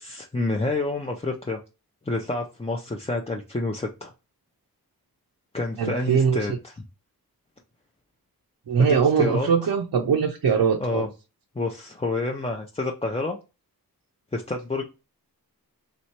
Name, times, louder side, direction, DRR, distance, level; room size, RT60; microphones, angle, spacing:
voice 1, 0.0-1.6 2.0-4.1 5.5-6.7 8.7-9.5 10.8-11.1 11.6-13.4 14.3-14.8, left 2 dB, 15° left, 0.5 m, -28 dB
voice 2, 5.8-6.4 8.7-11.1, right 6 dB, 85° right, 0.6 m, -21 dB
3.1 x 3.0 x 4.3 m
wide cardioid pair, 85°, 37 cm